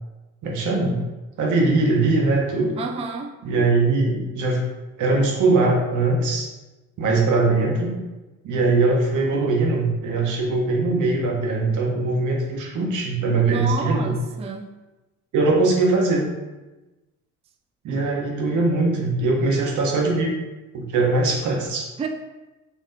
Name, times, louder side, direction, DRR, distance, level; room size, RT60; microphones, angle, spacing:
voice 1, 0.4-1.0 1.4-2.7 3.4-4.6 5.0-6.5 7.0-8.0 8.4-14.1 15.3-16.3 17.8-20.4 20.7-21.9, right 3 dB, 80° right, 0 dB, 1.1 m, -21 dB
voice 2, 2.8-3.4 13.4-14.7 22.0-22.1, right 5 dB, 20° right, 5 dB, 0.3 m, -30 dB
4.2 x 2.9 x 3.9 m, 1.1 s
cardioid pair, 90°, 30 cm